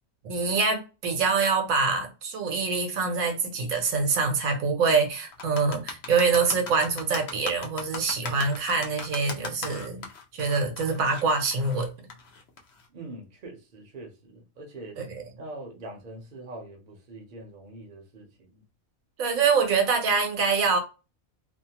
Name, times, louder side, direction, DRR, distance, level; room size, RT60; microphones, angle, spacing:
voice 1, 0.2-10.0 10.3-11.9 15.0-15.2 19.2-20.8, right 4 dB, 80° right, 1.1 m, -25 dB
sound 1, 5.3-12.9, left 5 dB, 60° left, 0.7 m, -37 dB
voice 2, 12.9-15.0 15.4-18.6, right 2 dB, 45° right, 0.7 m, -43 dB
2.7 x 2.1 x 2.8 m
omnidirectional pair, 1.4 m